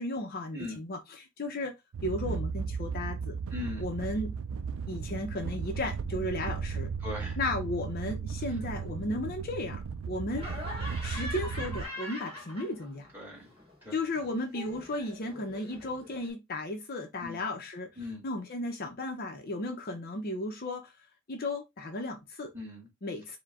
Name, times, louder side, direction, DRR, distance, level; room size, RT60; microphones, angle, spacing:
voice 1, 0.0-1.7 2.0-3.4 3.8-4.4 4.9-6.9 7.4-9.8 10.1-10.5 11.0-13.1 13.9-17.9 18.2-20.9 21.3-22.5 23.0-23.4, left 2 dB, 45° left, 0.7 m, -35 dB
sound 1, 1.9-11.8, right 5 dB, 70° right, 0.4 m, -35 dB
voice 2, 3.5-3.8 7.0-7.4 13.1-13.5 13.8-13.9 17.2-17.4 18.0-18.2 22.5-22.9, left 2 dB, 10° right, 1.8 m, -39 dB
Laughter, 10.3-13.1 13.4-16.3, left 1 dB, 25° right, 2.3 m, -43 dB
4.7 x 2.2 x 3.5 m
head